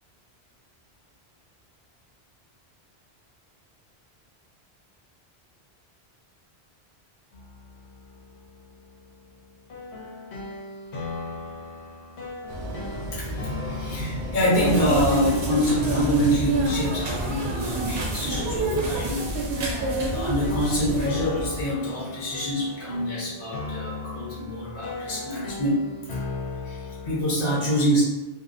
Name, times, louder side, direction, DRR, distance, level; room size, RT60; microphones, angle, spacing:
sound 1, 7.3-27.2, left 3 dB, 85° left, 0.9 m, -38 dB
sound 2, 12.5-21.7, equal, 55° right, 0.6 m, -35 dB
voice 1, 12.9-13.3 13.6-25.9 26.6-28.0, equal, 65° left, -7 dB, 0.9 m, -26 dB
sound 3, 14.5-21.1, right 2 dB, 90° right, 0.9 m, -28 dB
2.6 x 2.1 x 2.4 m, 1.1 s
omnidirectional pair, 1.1 m